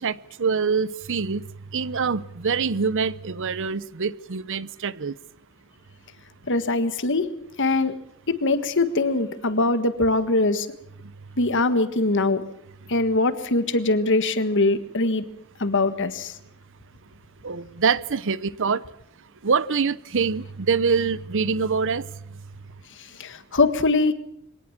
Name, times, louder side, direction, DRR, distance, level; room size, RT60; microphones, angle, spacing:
voice 1, 0.0-1.4 1.7-5.1 17.4-18.8 19.4-22.1, right 5 dB, 60° right, 0.8 m, -25 dB
voice 2, 6.5-7.3 7.6-7.9 8.3-10.7 11.4-12.5 12.9-15.2 15.6-16.4 23.2-24.1, left 2 dB, 60° left, 1.7 m, -22 dB
23.5 x 18.5 x 7.3 m
head